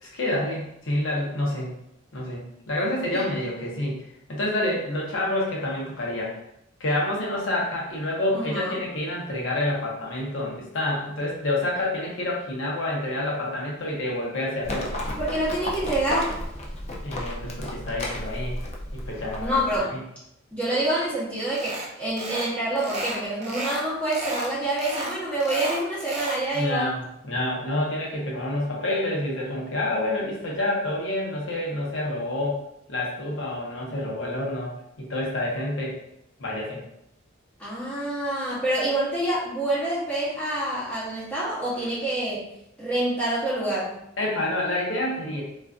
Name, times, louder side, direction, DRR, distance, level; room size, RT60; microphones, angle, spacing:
voice 1, 0.0-1.7 2.1-4.0 4.3-6.4 6.8-15.0 17.0-18.6 18.9-20.0 26.5-32.6 32.9-36.0 36.4-36.8 44.2-45.4, left 1 dB, 80° left, -3 dB, 0.8 m, -28 dB
voice 2, 8.3-8.8 15.2-16.3 19.4-19.9 20.5-26.9 37.6-42.4 42.8-43.9, right 1 dB, 5° left, -10 dB, 0.7 m, -27 dB
Livestock farm animals working animals, 14.6-19.8, left 1 dB, 35° left, 0.4 m, -33 dB
sound 1, 21.5-21.9 22.2-22.5 22.8-23.8 24.1-24.5 24.8-26.4, right 1 dB, 35° right, 0.5 m, -32 dB
2.4 x 2.4 x 2.3 m, 0.79 s
head